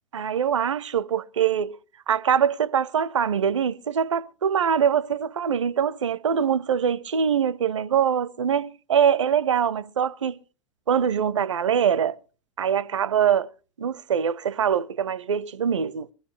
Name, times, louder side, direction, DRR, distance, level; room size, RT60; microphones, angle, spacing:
voice 1, 0.1-1.8 2.1-10.4 10.9-12.2 12.6-13.5 13.8-16.1, right 8 dB, 70° right, 0.6 m, -23 dB
20.0 x 13.5 x 3.1 m
figure-of-eight pair, 90°, 16 cm